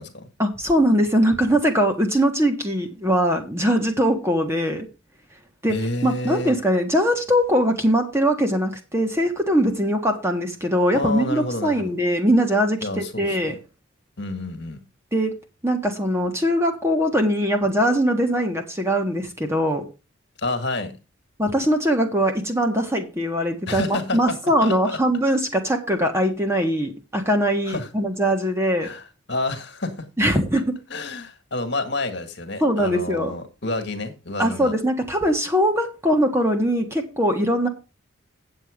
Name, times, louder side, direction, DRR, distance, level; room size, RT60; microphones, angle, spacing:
voice 1, 0.4-4.9 5.6-13.5 15.1-15.3 15.6-19.8 21.4-28.9 30.2-30.7 32.6-33.3 34.4-37.7, equal, 15° right, 1.5 m, -21 dB
voice 2, 5.7-6.5 10.9-11.9 12.8-13.6 14.2-14.8 20.4-21.0 23.7-24.4 24.6-25.0 27.7-27.9 28.8-30.1 30.9-34.7, left 2 dB, 55° left, 1.8 m, -29 dB
9.2 x 7.8 x 5.1 m
head